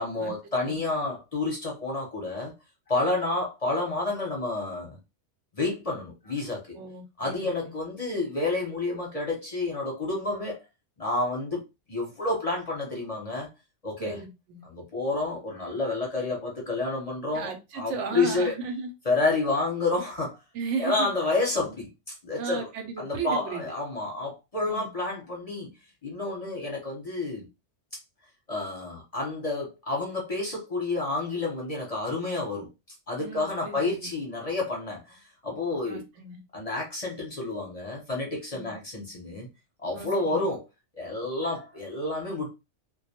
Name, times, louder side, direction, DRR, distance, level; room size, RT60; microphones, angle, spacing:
voice 1, 0.0-2.5 2.9-5.0 5.5-6.8 7.2-10.6 11.0-11.6 11.9-13.5 13.8-14.2 14.6-17.5 17.7-18.5 19.0-20.4 20.8-22.7 23.0-25.7 26.0-27.5 28.5-32.7 33.1-36.0 36.5-39.5 39.8-40.6 40.9-42.5, left 2 dB, 40° left, 0.6 m, -29 dB
voice 2, 6.7-7.7 14.0-14.6 17.3-18.9 20.5-21.1 22.4-23.7 24.6-24.9 33.2-34.1 35.9-36.4 38.5-38.7 39.9-40.5, right 5 dB, 85° right, 1.0 m, -35 dB
2.2 x 2.2 x 2.7 m
omnidirectional pair, 1.2 m